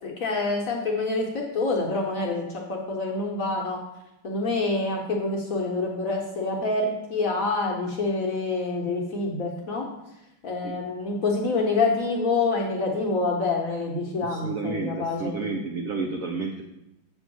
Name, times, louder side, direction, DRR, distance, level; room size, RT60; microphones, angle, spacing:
voice 1, 0.0-3.8 4.2-9.9 10.4-15.3, left 3 dB, 55° left, -1 dB, 1.1 m, -27 dB
voice 2, 14.2-16.6, right 3 dB, 75° right, 2 dB, 0.7 m, -31 dB
7.0 x 3.5 x 6.0 m, 0.89 s
omnidirectional pair, 2.1 m